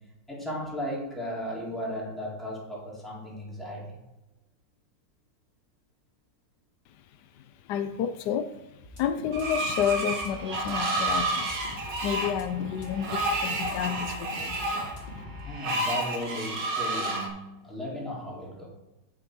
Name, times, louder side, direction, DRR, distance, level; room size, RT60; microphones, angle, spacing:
voice 1, 0.3-4.0 15.4-18.7, equal, ahead, -6 dB, 3.5 m, -35 dB
voice 2, 7.7-8.5 9.0-11.5 11.8-14.6, left 8 dB, 75° left, 9 dB, 1.1 m, -30 dB
sound 1, 8.8-15.4, left 2 dB, 30° left, 2.6 m, -43 dB
Screech, 9.3-17.3, right 2 dB, 75° right, 2.3 m, -30 dB
8.7 x 8.1 x 4.7 m, 1.0 s
omnidirectional pair, 2.0 m